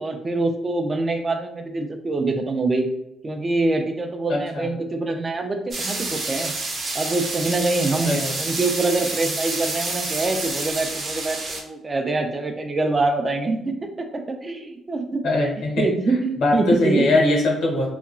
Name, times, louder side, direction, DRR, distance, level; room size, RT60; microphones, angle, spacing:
voice 1, 0.0-2.9 3.2-6.5 6.9-15.2 15.8-17.0, right 3 dB, 30° right, 5 dB, 0.4 m, -25 dB
voice 2, 4.3-4.7 8.0-8.4 15.2-15.9 16.4-17.9, left 2 dB, 75° left, -1 dB, 0.9 m, -21 dB
sound 1, 5.7-11.6, right 3 dB, 55° right, 0.7 m, -28 dB
2.8 x 2.2 x 2.5 m, 0.85 s
cardioid pair, 90°, 0 cm